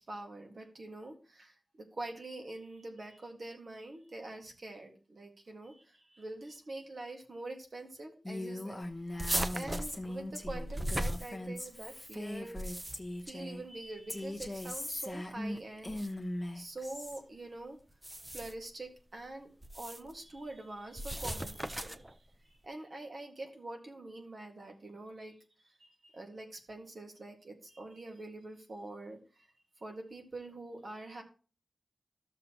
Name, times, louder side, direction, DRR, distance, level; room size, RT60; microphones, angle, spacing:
voice 1, 0.0-16.0 16.5-17.8 18.3-22.1 22.4-25.4 25.6-29.5 29.8-31.2, right 2 dB, 50° right, 3 dB, 1.9 m, -45 dB
Female speech woman speaking, 8.2-13.6 14.1-17.2, left 1 dB, 15° left, 1.1 m, -40 dB
sound 1, 9.2-11.8 12.4-13.2 14.4-15.0 15.9-16.1 17.9-18.7 19.6-20.1 21.0-22.1, right 1 dB, 15° right, 0.5 m, -37 dB
13.5 x 6.8 x 3.0 m, 0.36 s
wide cardioid pair, 120°, 0 cm